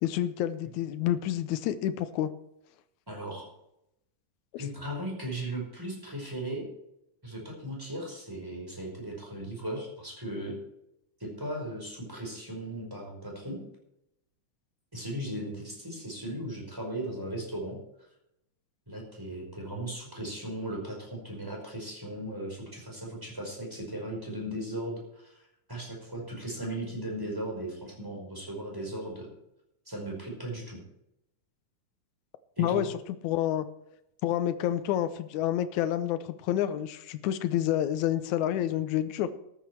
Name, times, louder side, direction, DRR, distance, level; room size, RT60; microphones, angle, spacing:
voice 1, 0.0-2.3 4.5-4.6 32.6-32.9 33.2-33.7 34.2-39.3, left 11 dB, 90° left, 11 dB, 2.1 m, -28 dB
voice 2, 3.1-3.5 4.6-6.6 7.2-10.6 11.2-13.6 14.9-17.8 18.9-29.3 29.9-30.8 32.6-32.9, right 1 dB, 5° right, -1 dB, 4.7 m, -37 dB
13.5 x 10.5 x 4.6 m, 0.81 s
omnidirectional pair, 3.4 m